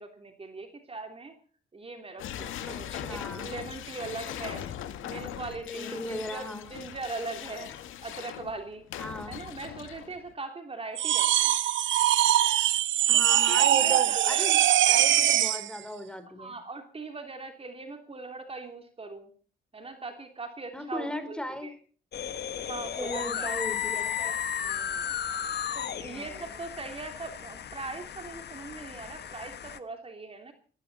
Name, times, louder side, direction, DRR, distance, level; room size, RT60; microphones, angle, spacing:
voice 1, 0.0-1.4 1.7-4.7 5.0-7.7 8.0-8.9 9.3-11.6 13.1-15.0 16.4-19.3 19.7-21.7 22.6-23.6 23.8-25.1 25.7-30.5, right 3 dB, 30° right, 5 dB, 3.1 m, -40 dB
sound 1, 2.2-10.3, left 10 dB, 85° left, 2.0 m, -40 dB
voice 2, 2.7-3.5 5.6-6.7 9.0-9.4 13.1-14.6 14.9-16.6 20.7-21.7 23.0-24.3 26.1-26.5, left 1 dB, 5° left, 9 dB, 3.9 m, -37 dB
sound 2, 11.0-15.7, right 12 dB, 70° right, 0.9 m, -22 dB
sound 3, 22.1-29.8, left 9 dB, 55° left, 1.4 m, -34 dB
20.0 x 16.0 x 4.2 m, 0.42 s
cardioid pair, 90°, 20 cm